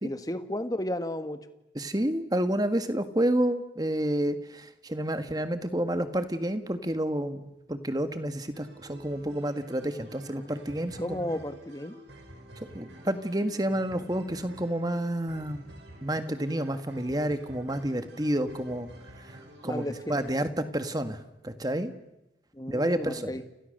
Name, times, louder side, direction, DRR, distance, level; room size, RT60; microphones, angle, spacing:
voice 1, 0.0-1.4 11.0-12.0 19.6-20.1 22.5-23.4, left 1 dB, 20° left, 9 dB, 1.5 m, -33 dB
voice 2, 1.7-11.4 12.7-15.7 16.0-18.9 19.2-19.8 20.1-21.9 22.7-23.4, right 1 dB, 20° right, 9 dB, 1.6 m, -30 dB
sound 1, 8.5-20.3, equal, 75° right, 7.1 m, -49 dB
30.0 x 29.5 x 6.7 m, 0.91 s
head